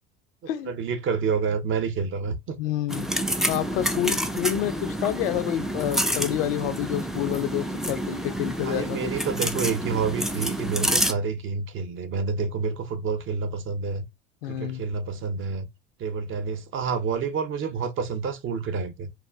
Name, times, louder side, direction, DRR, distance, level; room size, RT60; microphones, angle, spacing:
voice 1, 0.7-2.6 8.6-14.0 14.5-15.7 16.0-19.1, right 5 dB, 45° right, 0.7 m, -28 dB
voice 2, 2.6-3.1 3.5-9.1 14.4-14.8, left 12 dB, 75° left, 0.5 m, -28 dB
sound 1, 2.9-11.1, right 1 dB, ahead, 0.3 m, -28 dB
2.3 x 2.0 x 3.4 m
hypercardioid pair, 75°, 29 cm